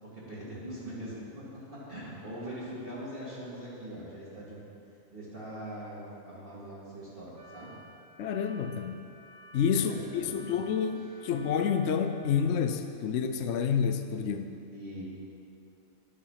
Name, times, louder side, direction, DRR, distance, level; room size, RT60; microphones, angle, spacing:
voice 1, 0.0-4.7 5.1-7.7 9.7-10.5 11.0-11.1 14.7-15.0, right 1 dB, 40° right, -10 dB, 2.8 m, -42 dB
sound 1, 7.4-12.4, right 1 dB, 70° right, 3.3 m, -53 dB
voice 2, 8.2-9.0 9.5-14.6, left 7 dB, 65° left, 7 dB, 0.9 m, -29 dB
12.0 x 8.3 x 5.8 m, 2.6 s
omnidirectional pair, 1.4 m